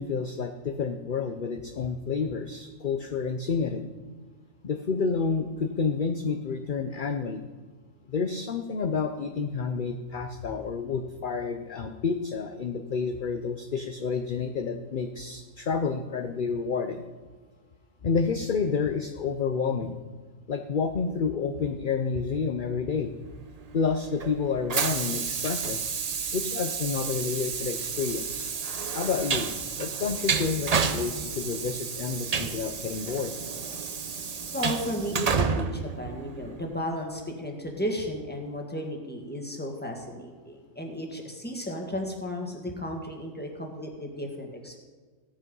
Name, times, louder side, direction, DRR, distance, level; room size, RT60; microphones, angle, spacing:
voice 1, 0.0-3.8 4.6-7.5 8.1-17.0 18.0-20.0 20.5-23.1 23.7-25.8 26.3-28.5 28.9-29.5 29.8-33.3, left 5 dB, 45° left, 7 dB, 0.8 m, -29 dB
Train, 23.6-36.7, right 5 dB, 40° right, 0.6 m, -31 dB
voice 2, 34.5-44.8, equal, 5° left, 1 dB, 1.9 m, -34 dB
16.0 x 9.0 x 5.4 m, 1.5 s
omnidirectional pair, 1.4 m